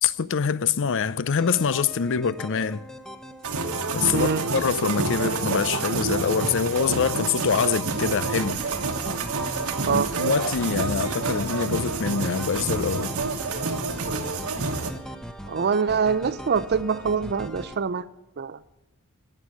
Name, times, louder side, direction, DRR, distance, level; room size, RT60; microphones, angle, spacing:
voice 1, 0.0-2.8 3.9-8.6 9.9-13.2, left 6 dB, 60° left, 0.5 m, -25 dB
sound 1, 1.3-17.8, equal, 5° left, 0.8 m, -40 dB
sound 2, 3.4-14.9, right 4 dB, 75° right, 1.3 m, -28 dB
voice 2, 4.1-4.4 9.8-10.1 15.5-18.0 18.4-18.6, right 5 dB, 50° right, 0.5 m, -24 dB
16.5 x 6.7 x 9.6 m
head